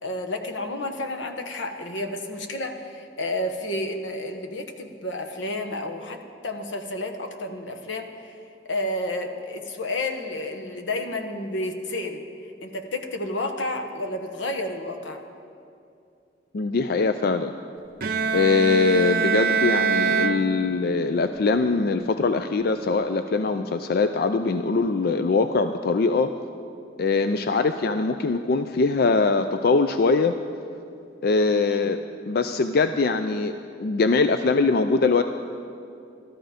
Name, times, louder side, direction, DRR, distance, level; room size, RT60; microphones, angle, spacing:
voice 1, 0.0-8.1 8.6-12.2 12.6-15.2 31.6-31.9, left 1 dB, 85° left, 4 dB, 1.1 m, -31 dB
voice 2, 16.5-17.5 18.3-26.3 27.0-30.4 31.2-32.0 32.3-35.2, left 4 dB, 55° left, 9 dB, 0.4 m, -22 dB
Bowed string instrument, 18.0-21.1, right 5 dB, 50° right, 0.6 m, -24 dB
14.0 x 13.0 x 5.1 m, 2.5 s
head